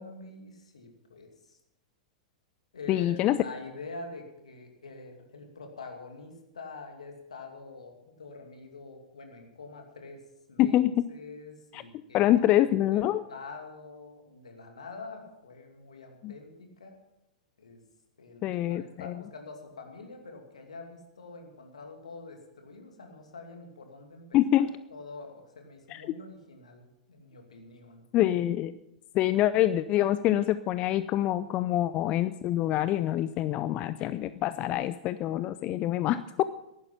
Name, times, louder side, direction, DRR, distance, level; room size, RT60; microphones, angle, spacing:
voice 1, 0.0-1.6 2.7-10.2 10.5-17.0 17.6-17.8 18.2-28.0, left 3 dB, 70° left, 4 dB, 2.6 m, -46 dB
voice 2, 2.9-3.4 10.6-11.1 11.7-11.8 12.1-13.2 16.2-16.3 18.4-19.1 24.3-24.7 25.9-26.0 28.1-28.8 29.1-36.4, left 13 dB, 30° left, 14 dB, 0.4 m, -25 dB
15.0 x 11.0 x 5.8 m, 0.90 s
figure-of-eight pair, 100°, 4 cm